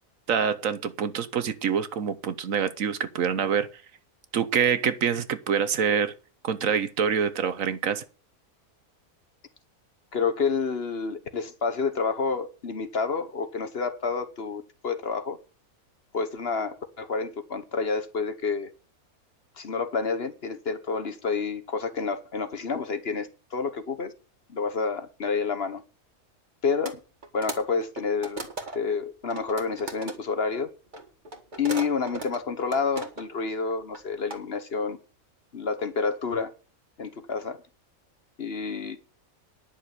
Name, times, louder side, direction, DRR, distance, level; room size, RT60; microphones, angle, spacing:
voice 1, 0.3-3.7 4.3-6.1 6.4-8.0, right 7 dB, 65° right, 1.3 m, -26 dB
voice 2, 10.1-15.4 16.1-18.7 19.6-24.1 24.5-25.8 26.6-27.0 27.3-28.4 28.7-30.7 31.6-35.0 35.5-36.5 37.0-37.6 38.4-39.0, left 5 dB, 45° left, 1.2 m, -29 dB
sound 1, 26.9-27.0 27.2-28.9 29.2-30.2 30.9-33.4 33.7-34.4, right 2 dB, 30° right, 2.0 m, -36 dB
10.5 x 6.7 x 8.1 m
omnidirectional pair, 1.5 m